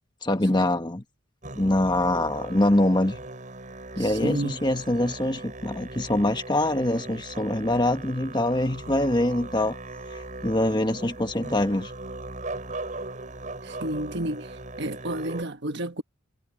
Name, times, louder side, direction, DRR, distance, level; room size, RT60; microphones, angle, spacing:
voice 1, 0.2-1.0 1.6-3.2 4.0-9.8 10.1-11.9, left 1 dB, 20° left, 1.4 m, -24 dB
Musical instrument, 1.4-15.4, right 2 dB, 40° right, 6.9 m, -39 dB
voice 2, 4.0-4.5 13.6-14.5 14.8-16.0, right 1 dB, 60° right, 1.3 m, -31 dB
head